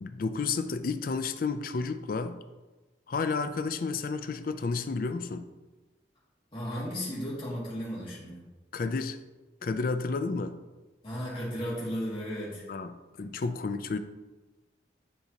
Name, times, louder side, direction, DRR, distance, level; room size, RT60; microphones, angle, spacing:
voice 1, 0.0-2.4 3.1-5.5 8.7-9.2 9.6-10.5 12.7-14.0, left 4 dB, 50° left, 10 dB, 0.4 m, -31 dB
voice 2, 6.5-8.4 11.0-12.7, equal, 30° left, -7 dB, 2.2 m, -35 dB
9.8 x 3.9 x 2.8 m, 1.2 s
head